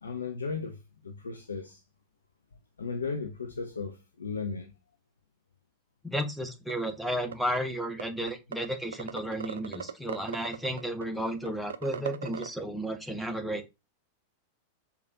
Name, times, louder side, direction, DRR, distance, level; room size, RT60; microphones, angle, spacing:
voice 1, 0.0-1.8 2.8-4.7, left 5 dB, 70° left, 0.4 m, -36 dB
voice 2, 6.0-13.6, equal, ahead, 0.6 m, -33 dB
sound 1, 6.7-6.8 7.1-7.6 8.0-8.1 8.3-8.7 8.9-12.5, right 7 dB, 65° right, 0.3 m, -37 dB
4.8 x 2.3 x 2.5 m
figure-of-eight pair, 90°, 0 cm